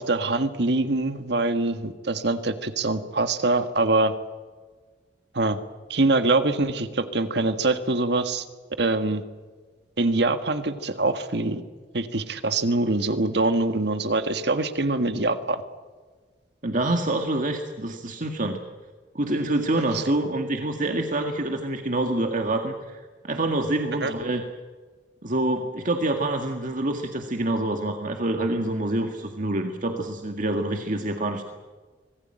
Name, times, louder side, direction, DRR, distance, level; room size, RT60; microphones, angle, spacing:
voice 1, 0.0-4.1 5.3-5.6 5.9-8.4 8.8-9.2 10.0-11.6 11.9-15.6 19.9-20.1 24.0-24.1, right 2 dB, 70° right, 9 dB, 1.7 m, -24 dB
voice 2, 16.6-18.6 19.2-24.4 25.2-31.4, right 1 dB, 50° right, 4 dB, 2.0 m, -26 dB
25.5 x 19.5 x 9.0 m, 1.4 s
head